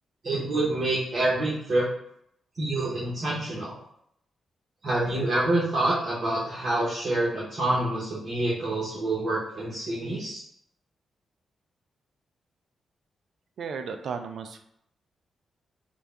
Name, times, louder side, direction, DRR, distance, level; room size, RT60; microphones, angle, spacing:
voice 1, 0.2-1.9 2.6-3.8 4.8-10.4, right 2 dB, 50° right, -8 dB, 1.1 m, -27 dB
voice 2, 13.6-14.6, right 5 dB, 70° right, 7 dB, 0.4 m, -34 dB
3.6 x 2.3 x 3.4 m, 0.72 s
cardioid pair, 80°, 0 cm